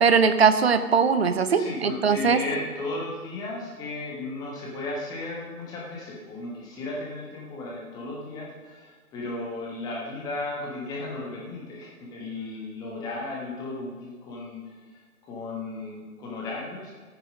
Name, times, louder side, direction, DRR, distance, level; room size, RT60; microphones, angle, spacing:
voice 1, 0.0-2.4, right 6 dB, 45° right, 11 dB, 0.8 m, -20 dB
voice 2, 1.5-14.8 15.2-16.9, left 2 dB, 10° left, -3 dB, 1.4 m, -35 dB
13.0 x 9.0 x 5.3 m, 1.5 s
figure-of-eight pair, 140°, 45 cm